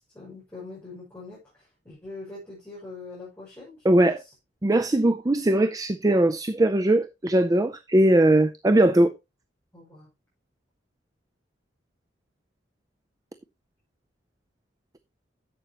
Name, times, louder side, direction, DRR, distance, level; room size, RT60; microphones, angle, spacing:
voice 1, 0.0-4.3 9.7-10.1, left 3 dB, 15° left, 6.0 m, -43 dB
voice 2, 3.9-4.2 4.6-9.1, right 1 dB, 20° right, 0.5 m, -20 dB
11.0 x 8.1 x 3.0 m
head